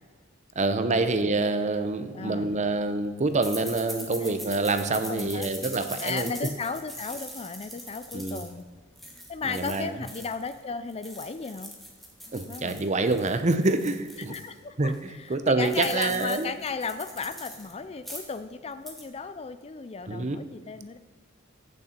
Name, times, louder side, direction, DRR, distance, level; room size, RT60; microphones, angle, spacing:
voice 1, 0.6-6.3 8.1-8.4 9.5-10.0 12.3-14.4 14.8-14.9 15.3-16.5 20.1-20.4, right 3 dB, 35° right, 9 dB, 0.7 m, -26 dB
voice 2, 2.1-2.5 4.0-4.4 5.1-5.5 6.0-8.7 9.3-11.7 12.5-12.8 14.2-21.0, left 5 dB, 30° left, 12 dB, 0.4 m, -35 dB
sound 1, 3.4-10.6 10.9-14.5 14.9-15.0 15.3-17.7 18.0-18.4 18.7-19.1, equal, ahead, 1.5 m, -42 dB
15.0 x 6.6 x 4.4 m, 1.5 s
head